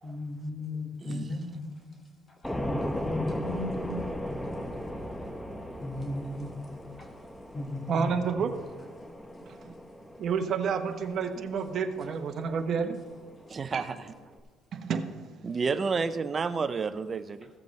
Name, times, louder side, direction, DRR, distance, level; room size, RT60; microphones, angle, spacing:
voice 1, 0.0-1.6 2.5-4.0 4.3-4.4 5.8-6.5 7.0-7.1 7.5-8.1, left 1 dB, 30° left, 2 dB, 1.5 m, -35 dB
voice 2, 1.0-1.4 13.5-14.1 15.4-17.5, right 5 dB, 30° right, 14 dB, 0.5 m, -31 dB
sound 1, 2.4-14.4, left 1 dB, 5° left, 0.7 m, -38 dB
voice 3, 7.9-8.5 9.5-9.6 10.2-13.0 13.7-13.9 14.7-15.1, right 6 dB, 50° right, 6 dB, 0.8 m, -29 dB
15.0 x 7.4 x 3.2 m, 1.4 s
cardioid pair, 105°, 0 cm